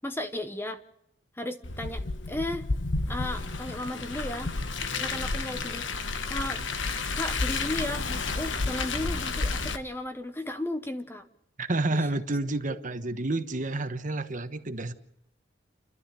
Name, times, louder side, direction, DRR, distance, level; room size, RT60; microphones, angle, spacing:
voice 1, 0.0-0.8 1.4-2.7 3.1-4.5 5.0-5.9 6.3-6.6 7.1-11.3 11.9-12.1 12.7-12.8, left 1 dB, 10° left, 0.8 m, -35 dB
Car, 1.6-9.8, left 3 dB, 70° left, 1.2 m, -31 dB
voice 2, 11.6-14.9, right 2 dB, 40° right, 1.2 m, -29 dB
30.0 x 12.5 x 6.9 m
head